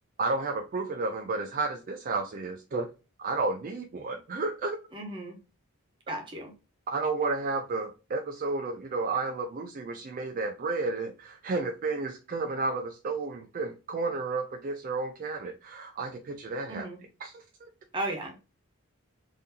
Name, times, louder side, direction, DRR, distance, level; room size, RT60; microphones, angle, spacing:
voice 1, 0.2-2.9 3.2-4.8 6.9-16.9 17.2-17.7, right 3 dB, 40° right, 0.3 m, -32 dB
voice 2, 4.9-5.4 6.1-6.5 16.7-17.0 17.9-18.3, right 1 dB, 20° right, 0.8 m, -35 dB
3.6 x 2.6 x 2.7 m
head